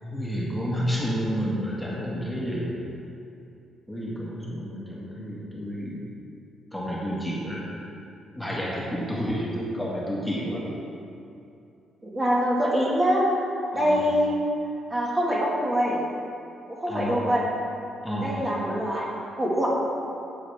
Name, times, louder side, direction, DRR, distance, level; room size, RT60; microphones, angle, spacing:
voice 1, 0.0-2.7 3.9-6.0 6.7-7.8 8.3-10.6 13.7-14.0 16.9-17.2 18.0-18.3, equal, 5° left, -6 dB, 1.8 m, -30 dB
voice 2, 12.0-13.3 13.7-14.4 14.9-16.0 16.7-17.4 18.1-19.7, equal, 20° right, -5 dB, 1.9 m, -24 dB
8.9 x 8.1 x 3.6 m, 2.6 s
cardioid pair, 90°, 0 cm